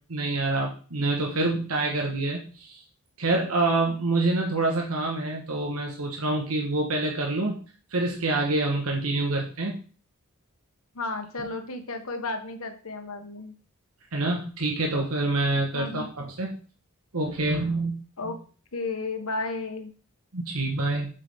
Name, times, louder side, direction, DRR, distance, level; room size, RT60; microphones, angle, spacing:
voice 1, 0.1-2.8 3.2-7.6 7.9-9.8 14.1-16.6 17.1-18.0 18.2-18.3 20.3-21.1, right 2 dB, 80° right, 1 dB, 1.4 m, -26 dB
voice 2, 10.9-13.5 15.7-16.1 18.2-18.4 18.7-19.9, left 3 dB, 80° left, 6 dB, 1.6 m, -33 dB
8.3 x 7.3 x 3.7 m, 0.38 s
head